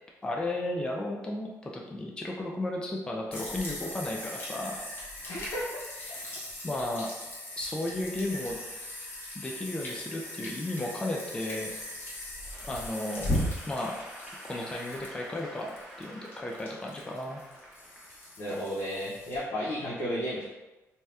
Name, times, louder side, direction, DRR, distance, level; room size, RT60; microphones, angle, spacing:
voice 1, 0.2-4.8 6.6-7.1 7.6-8.6 9.4-11.7 12.7-13.4 13.7-14.0 14.5-17.4, left 1 dB, 15° left, -1 dB, 0.4 m, -34 dB
sound 1, 3.3-19.4, left 1 dB, 40° left, 0.9 m, -38 dB
voice 2, 5.2-5.8 18.4-20.4, equal, 85° left, -9 dB, 0.8 m, -33 dB
Applause / Crowd, 12.4-18.8, equal, ahead, 0.8 m, -48 dB
2.7 x 2.3 x 3.3 m, 1.1 s
cardioid pair, 110°, 6 cm